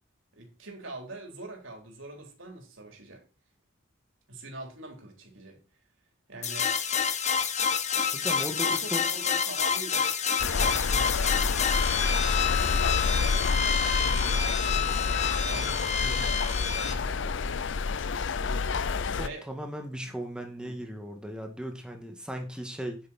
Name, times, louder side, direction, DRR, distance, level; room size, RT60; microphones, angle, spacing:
voice 1, 0.3-3.2 4.3-5.6 6.3-6.7 8.4-11.2 12.6-13.1 13.3-17.8 19.1-19.5 19.9-20.1 20.6-20.8, right 2 dB, 75° right, 2 dB, 3.9 m, -44 dB
sound 1, 6.4-16.9, left 7 dB, 35° left, 1.1 m, -28 dB
voice 2, 8.1-9.0 19.0-23.0, equal, 5° right, 3 dB, 2.1 m, -37 dB
sound 2, 10.4-19.3, left 4 dB, 65° left, 0.6 m, -28 dB
9.8 x 8.7 x 4.4 m, 0.32 s
head